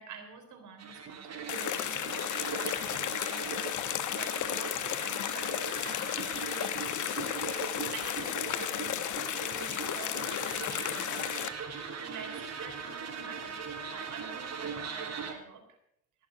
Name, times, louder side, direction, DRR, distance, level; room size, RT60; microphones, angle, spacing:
voice 1, 0.0-7.2 7.6-9.2 9.5-11.1 12.0-15.6, right 6 dB, 80° right, 4 dB, 3.8 m, -48 dB
sound 1, 0.8-15.3, right 6 dB, 60° right, 3.4 m, -40 dB
sound 2, 1.5-11.5, left 12 dB, 80° left, 1.0 m, -34 dB
19.5 x 7.1 x 6.4 m, 0.74 s
cardioid pair, 90°, 30 cm